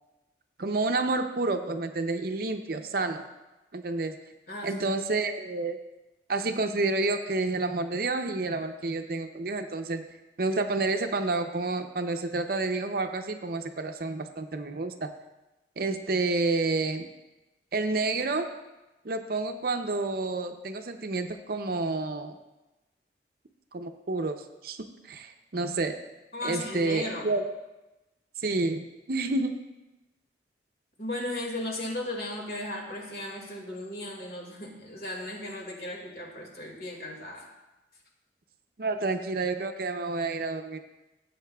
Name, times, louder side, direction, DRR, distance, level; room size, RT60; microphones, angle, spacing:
voice 1, 0.6-3.2 3.7-4.2 4.6-5.8 6.3-10.0 10.4-15.1 15.8-17.1 17.7-18.5 19.0-22.4 23.7-26.0 26.4-27.4 28.4-29.5 38.8-40.8, right 3 dB, 50° right, 7 dB, 0.6 m, -29 dB
voice 2, 4.5-4.9 26.3-27.3 31.0-37.5, left 1 dB, 55° left, -1 dB, 2.0 m, -36 dB
16.5 x 7.9 x 2.3 m, 1.0 s
head